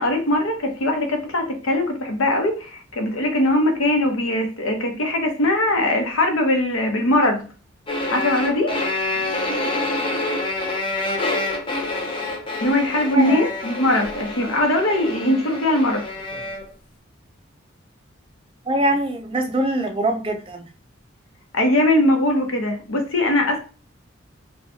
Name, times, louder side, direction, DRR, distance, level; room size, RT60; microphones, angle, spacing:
voice 1, 0.0-7.4 8.1-8.8 12.6-16.0 21.5-23.6, left 1 dB, 85° left, 4 dB, 0.8 m, -21 dB
sound 1, 7.9-16.7, left 2 dB, 25° left, 0.6 m, -27 dB
voice 2, 18.7-20.6, right 1 dB, 25° right, 4 dB, 0.4 m, -23 dB
4.2 x 2.3 x 2.7 m, 0.36 s
head